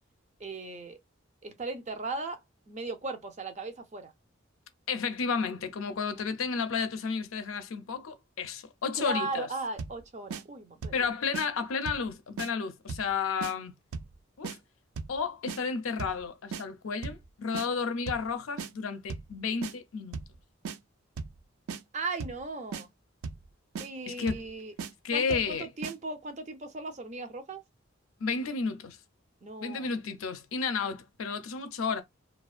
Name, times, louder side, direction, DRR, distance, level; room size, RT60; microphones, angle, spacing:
voice 1, 0.4-1.0 1.4-2.4 2.7-4.1 9.0-10.9 21.9-22.9 23.8-24.7 25.1-27.6 29.4-29.9, right 3 dB, 35° right, 0.5 m, -37 dB
voice 2, 4.9-9.5 10.9-13.7 14.4-14.6 15.1-20.2 24.1-24.4 25.0-25.7 28.2-29.0 29.6-32.0, left 5 dB, 80° left, 0.5 m, -32 dB
sound 1, 9.8-10.0 10.3-10.4 10.8-11.0 11.3-11.5 11.9-12.1 12.4-12.5 12.9-13.1 13.4-13.5 13.9-14.1 14.4-14.6 15.0-15.2 15.5-15.6 16.0-16.2 16.5-16.6 17.0-17.3 17.5-17.7 18.1-18.3 18.6-18.7 19.1-19.3 19.6-19.7 20.1-20.4 20.7-20.8 21.2-21.4 21.7-21.8 22.2-22.4 22.7-22.8 23.2-23.5 23.8-23.9 24.3-24.5 24.8-24.9 25.3-25.5 25.8-26.0, right 5 dB, 90° right, 0.4 m, -37 dB
2.4 x 2.3 x 2.4 m
head